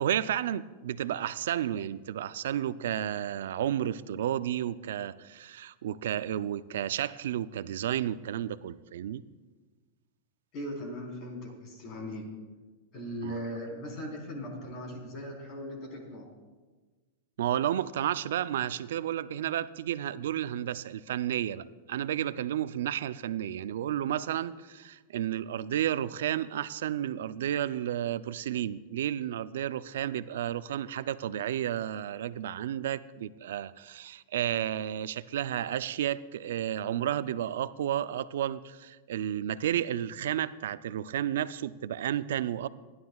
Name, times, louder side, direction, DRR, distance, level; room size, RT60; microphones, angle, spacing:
voice 1, 0.0-9.2 13.2-13.4 17.4-42.7, right 11 dB, 80° right, 15 dB, 0.4 m, -32 dB
voice 2, 10.5-12.3 12.9-16.3, equal, 40° left, 1 dB, 3.9 m, -39 dB
27.0 x 11.0 x 2.4 m, 1.3 s
supercardioid pair, 140°, 0 cm